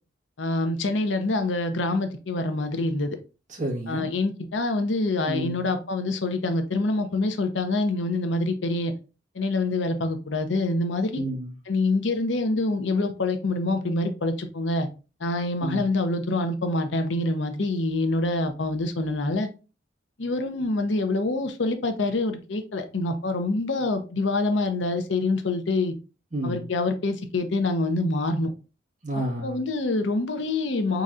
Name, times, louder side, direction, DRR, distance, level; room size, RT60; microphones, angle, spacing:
voice 1, 0.4-3.2 3.9-8.9 9.3-11.2 11.7-14.9 15.2-19.5 20.2-25.9 26.4-28.5 29.4-31.0, left 2 dB, 90° left, 0.7 m, -26 dB
voice 2, 3.5-4.1 5.3-5.6 11.1-11.5 15.6-15.8 26.3-26.6 29.0-29.6, right 1 dB, 45° right, 1.5 m, -30 dB
4.2 x 4.0 x 2.5 m
head